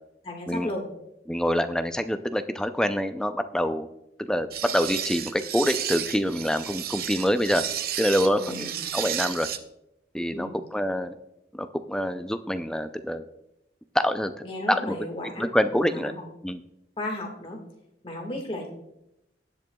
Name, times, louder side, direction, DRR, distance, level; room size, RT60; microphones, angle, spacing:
voice 1, 0.2-0.9 8.4-8.8 10.3-10.5 14.4-16.3 17.0-17.6 18.0-18.7, left 1 dB, 30° left, 1 dB, 1.7 m, -34 dB
voice 2, 1.3-3.9 4.2-7.6 8.0-9.5 10.1-11.1 11.5-13.2 13.9-14.3 14.7-15.0 15.4-16.1 16.4-16.6, equal, 5° left, 9 dB, 0.4 m, -26 dB
sound 1, 4.5-9.6, right 10 dB, 55° right, 0.6 m, -32 dB
19.0 x 7.8 x 2.3 m, 0.88 s
head